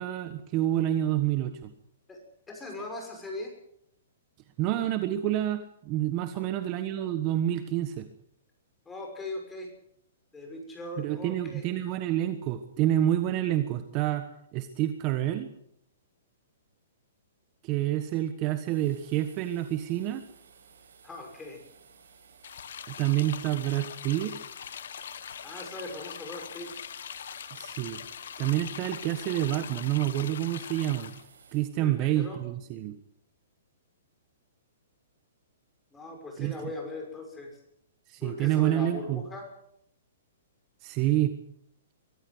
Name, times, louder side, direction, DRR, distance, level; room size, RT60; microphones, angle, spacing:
voice 1, 0.0-1.7 4.6-8.1 11.0-14.2 14.5-15.5 17.6-20.2 22.9-24.3 27.5-28.0 28.4-31.1 31.5-33.0 36.4-36.5 38.1-39.2 40.8-41.3, right 13 dB, 30° right, 10 dB, 1.3 m, -28 dB
voice 2, 2.5-3.5 6.3-6.7 8.8-9.7 10.3-11.6 21.0-21.6 25.4-26.9 31.8-32.4 35.9-37.6 38.2-39.5, left 2 dB, 10° left, 2 dB, 6.2 m, -40 dB
sound 1, 18.7-31.7, right 6 dB, 85° right, 7.0 m, -57 dB
sound 2, 22.4-31.2, left 8 dB, 70° left, 1.4 m, -42 dB
23.5 x 14.5 x 7.9 m, 0.72 s
hypercardioid pair, 155°, 0 cm